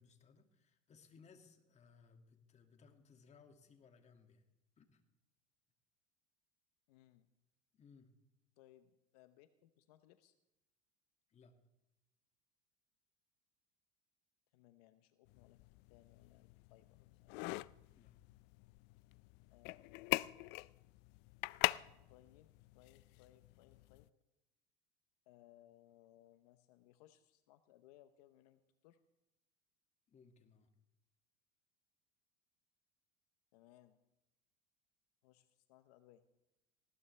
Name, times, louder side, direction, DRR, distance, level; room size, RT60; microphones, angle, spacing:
voice 1, 0.0-4.4 4.8-5.0 7.7-8.1 11.3-11.6 17.9-18.1 30.1-30.7, left 5 dB, 35° left, 5 dB, 2.2 m, -64 dB
voice 2, 6.9-7.3 8.6-10.4 14.5-15.6 15.9-17.4 19.5-20.3 22.1-24.1 25.3-29.0 33.5-34.0 35.2-36.2, left 13 dB, 80° left, 11 dB, 0.9 m, -66 dB
sound 1, 15.3-24.1, left 22 dB, 60° left, 0.4 m, -43 dB
19.5 x 16.5 x 3.3 m, 0.94 s
supercardioid pair, 95°, 20 cm